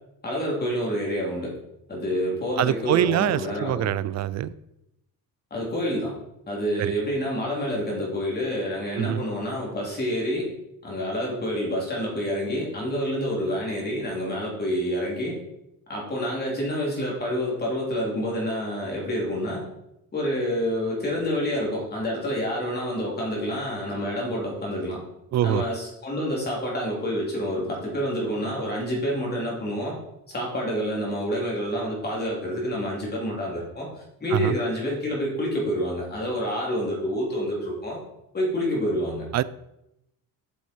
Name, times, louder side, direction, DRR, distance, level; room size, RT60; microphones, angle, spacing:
voice 1, 0.2-1.6 1.9-3.9 5.5-6.2 6.5-10.5 10.8-15.4 15.9-19.6 20.1-25.0 25.4-30.0 30.3-33.9 34.2-38.0 38.3-39.3, equal, 25° left, 3.5 m, -28 dB
voice 2, 2.6-4.5 6.8-6.9 8.9-9.2 25.3-25.6 34.3-34.6 39.3-39.4, right 12 dB, 50° right, 0.4 m, -24 dB
8.1 x 7.0 x 4.6 m
cardioid pair, 140°, 37 cm